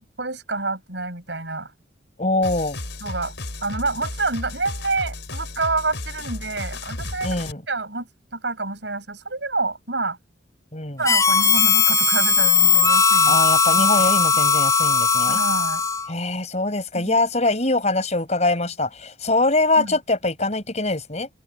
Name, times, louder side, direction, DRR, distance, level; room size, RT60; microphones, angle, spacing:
voice 1, 0.0-1.7 3.0-3.3 3.6-7.3 7.7-10.2 11.0-13.4 15.3-15.8 16.9-17.2 19.8-20.0, right 3 dB, 70° right, 7.3 m, -28 dB
voice 2, 2.2-2.8 7.2-7.6 10.7-11.0 13.3-15.4 16.1-21.3, left 2 dB, 35° left, 6.2 m, -23 dB
sound 1, 2.4-7.5, left 2 dB, 75° left, 4.6 m, -34 dB
Harmonica, 11.0-16.1, left 5 dB, 20° left, 2.8 m, -18 dB
head